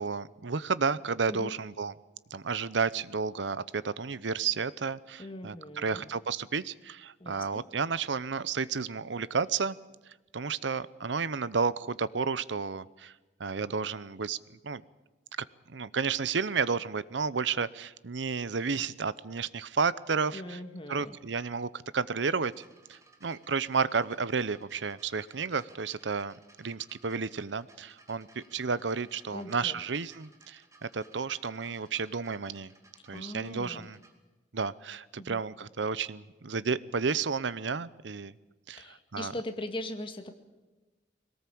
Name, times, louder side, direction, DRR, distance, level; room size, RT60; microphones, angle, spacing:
voice 1, 0.0-1.9 2.3-9.8 10.3-13.1 13.4-14.4 14.6-14.8 15.7-20.6 20.9-22.6 22.9-32.7 33.1-34.0 34.5-38.3 38.7-39.3, right 5 dB, 75° right, 18 dB, 0.8 m, -32 dB
voice 2, 5.2-6.1 7.2-7.7 20.3-21.2 29.3-29.8 33.1-33.9 35.2-35.4 38.8-40.3, left 1 dB, 30° left, 6 dB, 1.9 m, -40 dB
sound 1, 22.4-34.1 35.1-35.2, right 2 dB, 15° right, 2.5 m, -60 dB
21.5 x 18.5 x 8.6 m, 1.2 s
head